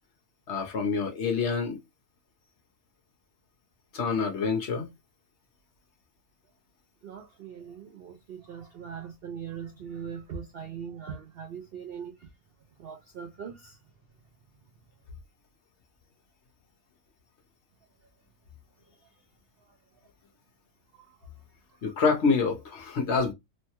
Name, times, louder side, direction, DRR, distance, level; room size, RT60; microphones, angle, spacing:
voice 1, 0.5-1.8 3.9-4.9 21.8-23.3, left 5 dB, 55° left, 0.9 m, -27 dB
voice 2, 7.0-12.3 12.8-13.8 20.9-21.1 21.8-22.0, right 7 dB, 70° right, 0.5 m, -41 dB
3.1 x 2.2 x 2.8 m
omnidirectional pair, 1.6 m